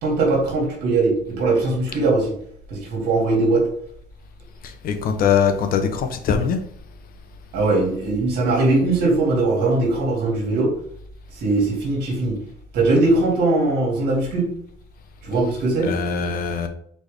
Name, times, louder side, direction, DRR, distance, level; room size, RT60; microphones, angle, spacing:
voice 1, 0.0-2.3 2.7-3.7 7.5-10.7 11.3-12.4 12.7-14.5 15.2-15.9, right 2 dB, 75° right, 1.8 m, -20 dB
voice 2, 4.6-6.6 15.8-16.7, left 7 dB, 60° left, 0.7 m, -22 dB
4.2 x 3.5 x 3.2 m
cardioid pair, 110°, 17 cm